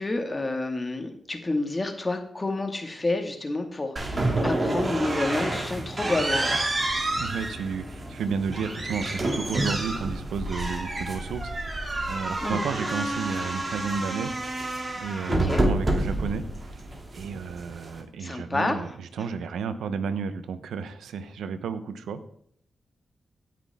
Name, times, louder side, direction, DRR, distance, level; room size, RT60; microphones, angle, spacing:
voice 1, 0.0-6.5 12.4-12.6 15.3-15.6 18.2-18.8 19.2-19.3, left 2 dB, 30° left, 5 dB, 2.0 m, -29 dB
sound 1, 4.0-18.0, right 1 dB, 35° right, 2.4 m, -29 dB
voice 2, 7.2-22.2, right 6 dB, 90° right, 11 dB, 0.8 m, -32 dB
17.5 x 6.0 x 3.6 m, 0.65 s
cardioid pair, 50°, 0 cm